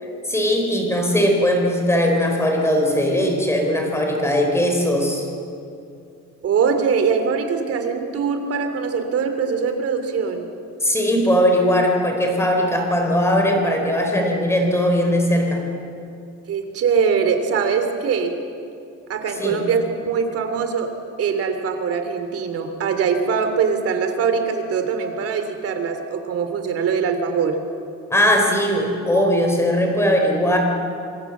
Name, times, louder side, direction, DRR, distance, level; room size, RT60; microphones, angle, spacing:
voice 1, 0.3-5.3 10.8-15.6 19.4-19.6 28.1-30.6, equal, 10° left, 2 dB, 4.4 m, -19 dB
voice 2, 6.4-10.5 16.5-18.3 19.1-20.9 21.2-27.6, right 6 dB, 50° right, 7 dB, 3.0 m, -22 dB
26.0 x 25.5 x 7.4 m, 2.6 s
cardioid pair, 170°, 29 cm